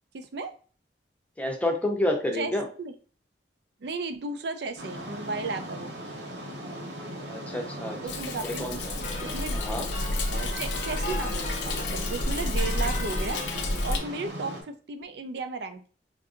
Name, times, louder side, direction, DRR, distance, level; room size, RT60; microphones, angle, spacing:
voice 1, 0.1-0.5 2.3-2.5 2.8-3.0 3.8-5.9 8.0-8.7 9.2-9.7 10.3-13.4 13.8-15.9, right 3 dB, 65° right, 8 dB, 0.5 m, -34 dB
voice 2, 1.4-2.7 7.3-8.0 8.4-8.9 9.5-9.9, left 1 dB, 10° left, 2 dB, 0.6 m, -29 dB
sound 1, 4.8-14.6, right 1 dB, 85° right, 0.9 m, -38 dB
Thunder, 8.1-14.0, left 2 dB, 80° left, 0.6 m, -30 dB
sound 2, 9.0-14.4, left 3 dB, 45° left, 0.6 m, -39 dB
4.5 x 2.6 x 2.4 m, 0.40 s
head